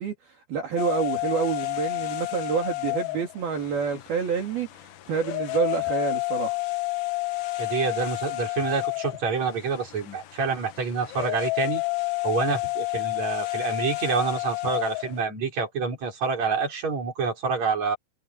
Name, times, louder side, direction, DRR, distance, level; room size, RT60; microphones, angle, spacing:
voice 1, 0.0-6.6, right 6 dB, 55° right, 5.0 m, -28 dB
sound 1, 0.8-15.2, left 23 dB, 70° left, 2.4 m, -30 dB
voice 2, 7.6-11.8 12.2-18.0, right 5 dB, 35° right, 6.3 m, -27 dB
omnidirectional pair, 5.5 m